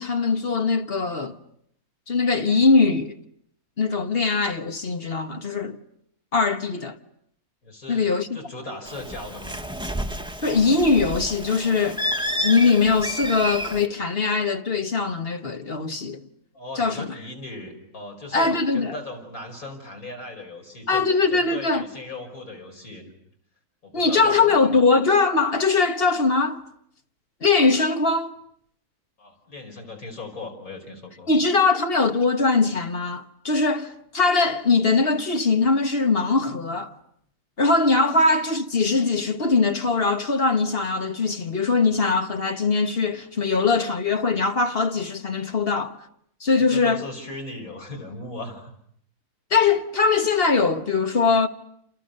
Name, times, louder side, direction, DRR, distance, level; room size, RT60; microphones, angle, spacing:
voice 1, 0.0-1.4 2.1-3.2 3.8-5.8 6.3-7.0 7.9-8.4 10.4-12.0 12.4-16.2 16.8-17.1 18.3-18.9 20.9-21.9 23.9-26.6 27.4-28.3 31.3-36.9 37.6-46.0 46.4-47.0 49.5-51.5, left 4 dB, 40° left, 1.4 m, -21 dB
voice 2, 7.6-9.7 16.5-21.0 21.3-23.1 23.8-24.7 29.2-31.3 38.0-38.2 46.6-48.7, left 2 dB, 65° left, 5.7 m, -38 dB
Bird, 8.9-13.9, equal, 5° right, 1.1 m, -30 dB
29.0 x 28.0 x 6.6 m
omnidirectional pair, 1.6 m